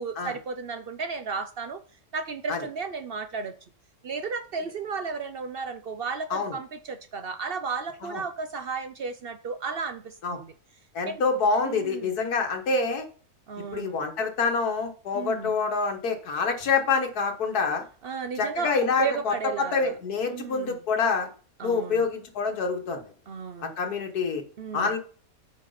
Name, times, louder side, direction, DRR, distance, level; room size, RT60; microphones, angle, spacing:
voice 1, 0.0-1.8 2.1-3.5 4.0-10.5 11.1-11.2 11.6-12.2 13.5-13.9 15.1-15.5 18.0-19.9 20.3-20.8 21.6-22.1 23.3-23.7 24.6-24.9, right 5 dB, 65° right, 9 dB, 0.6 m, -34 dB
voice 2, 10.9-13.1 13.7-17.8 18.4-21.3 21.6-23.1 23.6-24.4 24.7-25.0, left 4 dB, 75° left, 4 dB, 1.9 m, -26 dB
8.9 x 4.7 x 5.6 m, 0.40 s
omnidirectional pair, 1.6 m